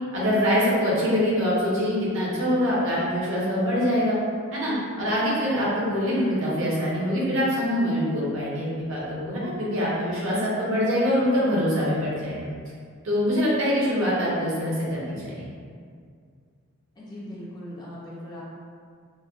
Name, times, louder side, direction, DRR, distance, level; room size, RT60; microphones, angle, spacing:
voice 1, 0.1-4.2 4.5-12.5 13.0-15.4, equal, 60° right, -7 dB, 0.8 m, -24 dB
voice 2, 17.0-18.4, left 1 dB, 20° left, -8 dB, 0.4 m, -39 dB
3.1 x 2.1 x 2.4 m, 2.1 s
head